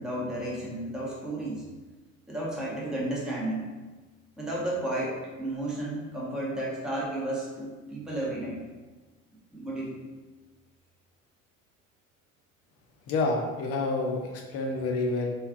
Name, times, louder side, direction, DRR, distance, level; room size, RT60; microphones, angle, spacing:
voice 1, 0.0-1.7 2.3-3.7 4.4-8.6 9.5-10.0, right 1 dB, ahead, -5 dB, 0.7 m, -32 dB
voice 2, 13.1-15.3, left 3 dB, 35° left, 1 dB, 0.5 m, -28 dB
3.2 x 2.4 x 2.4 m, 1.3 s
figure-of-eight pair, 65°, 41 cm